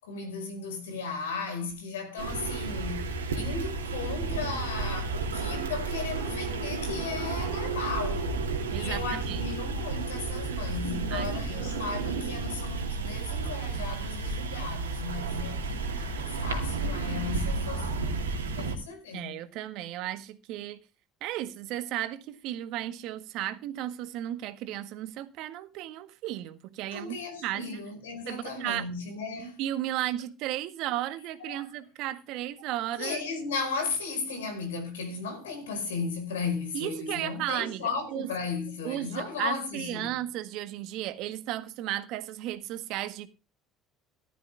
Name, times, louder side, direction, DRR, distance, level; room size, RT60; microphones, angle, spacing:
voice 1, 0.0-3.1 3.3-8.3 8.7-19.4 26.9-29.6 31.0-31.1 31.4-31.7 32.0-32.1 33.0-40.2, left 4 dB, 80° left, 5.0 m, -36 dB
sound 1, 2.2-18.8, right 4 dB, 85° right, 2.5 m, -32 dB
voice 2, 8.7-9.4 11.1-12.2 19.1-20.8 21.2-27.6 28.3-28.8 29.6-33.2 36.7-37.8 38.1-38.3 38.8-43.3, right 13 dB, 65° right, 1.7 m, -34 dB
15.0 x 12.5 x 3.5 m
hypercardioid pair, 65°, 0 cm